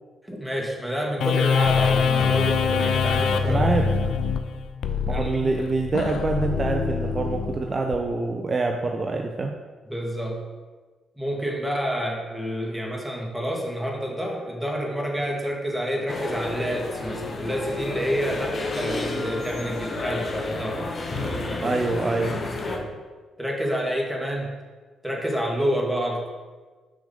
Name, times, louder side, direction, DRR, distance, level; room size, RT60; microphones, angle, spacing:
voice 1, 0.2-4.1 5.1-5.5 9.9-10.4 11.2-20.8 21.2-21.7 22.1-22.9 23.4-24.5 25.0-26.2, equal, ahead, -1 dB, 2.0 m, -29 dB
sound 1, 1.2-8.0, left 5 dB, 65° left, 0.5 m, -24 dB
voice 2, 3.5-3.9 5.1-9.5 21.6-22.4, right 3 dB, 35° right, 3 dB, 0.6 m, -25 dB
sound 2, 16.1-22.8, left 2 dB, 45° left, 1.1 m, -31 dB
6.1 x 5.0 x 5.3 m, 1.3 s
hypercardioid pair, 40°, 0 cm